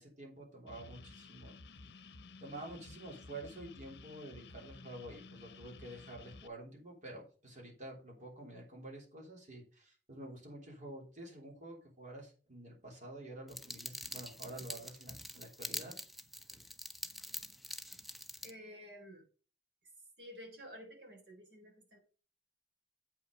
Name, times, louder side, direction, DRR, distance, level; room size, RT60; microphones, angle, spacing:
voice 1, 0.0-1.6 2.4-16.0, right 1 dB, 45° right, -1 dB, 3.4 m, -49 dB
sound 1, 0.7-6.5, left 3 dB, 70° left, 0.7 m, -54 dB
sound 2, 13.5-18.5, equal, ahead, 0.6 m, -45 dB
voice 2, 18.4-19.2 20.2-22.0, equal, 80° right, 2 dB, 3.9 m, -51 dB
8.3 x 5.8 x 5.2 m, 0.39 s
head